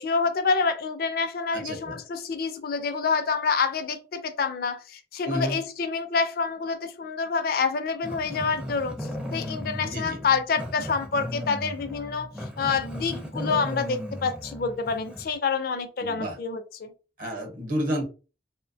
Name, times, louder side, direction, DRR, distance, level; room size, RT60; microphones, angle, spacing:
voice 1, 0.0-12.3 12.6-16.9, left 5 dB, 55° left, 0.4 m, -27 dB
voice 2, 1.5-2.0 5.2-5.6 9.8-10.2 16.0-16.4 17.2-18.0, equal, 50° right, 0.8 m, -30 dB
Growling, 8.0-15.3, left 1 dB, 5° right, 0.4 m, -36 dB
2.6 x 2.1 x 2.6 m
head